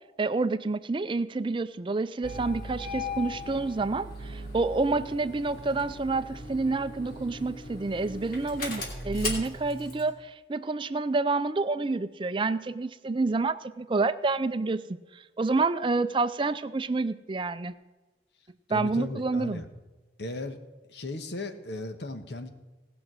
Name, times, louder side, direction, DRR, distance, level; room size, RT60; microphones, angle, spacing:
voice 1, 0.2-14.8 15.4-17.7 18.7-19.6, right 3 dB, 30° right, 12 dB, 0.4 m, -28 dB
Engine starting, 2.2-10.1, left 2 dB, 55° left, 3.0 m, -38 dB
voice 2, 18.7-19.6 20.2-20.6 20.9-22.5, left 2 dB, 70° left, 7 dB, 1.2 m, -36 dB
18.0 x 6.2 x 6.2 m, 1.2 s
head